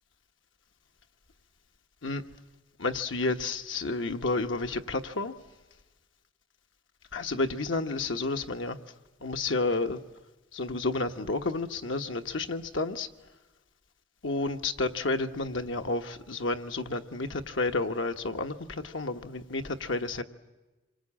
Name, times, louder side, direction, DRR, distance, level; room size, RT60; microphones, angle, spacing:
voice 1, 2.8-5.3 7.1-8.8 9.2-10.0 10.5-13.1 14.2-20.2, left 3 dB, 85° left, 1.2 m, -31 dB
26.5 x 23.0 x 8.7 m
head